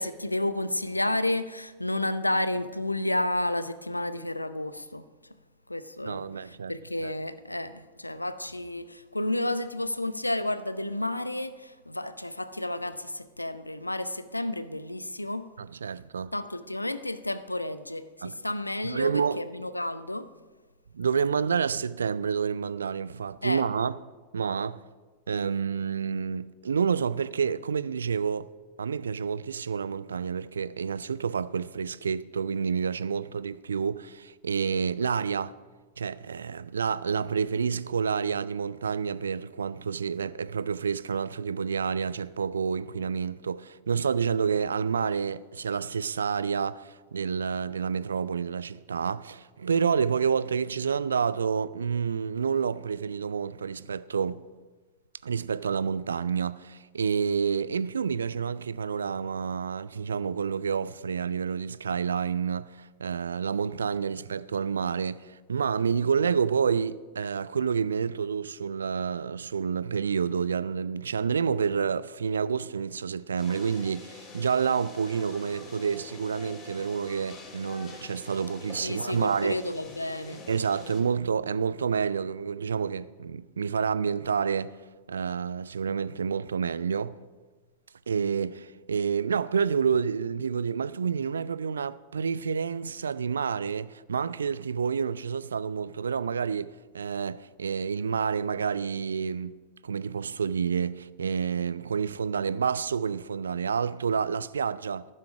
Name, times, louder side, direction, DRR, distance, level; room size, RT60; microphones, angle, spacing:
voice 1, 0.0-5.0 5.7-15.5 16.3-20.3 23.4-23.6 78.8-80.4, left 1 dB, 85° left, 0.6 m, -31 dB
voice 2, 6.1-6.7 7.0-7.1 15.6-16.3 18.2-18.3 18.8-19.4 20.9-24.0 24.3-24.8 25.3-28.5 28.8-35.5 36.0-54.4 55.2-79.6 80.5-84.8 85.1-87.2 88.1-99.5 99.8-105.1, right 6 dB, 70° right, 0.4 m, -29 dB
sound 1, 73.4-81.0, left 4 dB, 30° left, 3.4 m, -46 dB
14.5 x 12.0 x 4.9 m
figure-of-eight pair, 90°, 0 cm